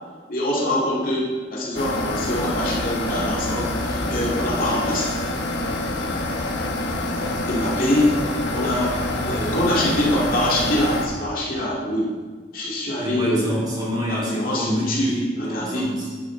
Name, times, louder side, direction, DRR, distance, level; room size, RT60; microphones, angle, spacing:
voice 1, 0.3-5.1 7.5-8.1 8.5-9.0 9.3-12.1 12.5-13.6 14.1-15.9, left 1 dB, 50° left, -4 dB, 2.1 m, -24 dB
sound 1, 1.7-11.1, left 2 dB, 90° left, 1.2 m, -26 dB
voice 2, 13.0-16.2, equal, 25° right, -5 dB, 2.7 m, -28 dB
10.0 x 8.4 x 3.8 m, 1.4 s
head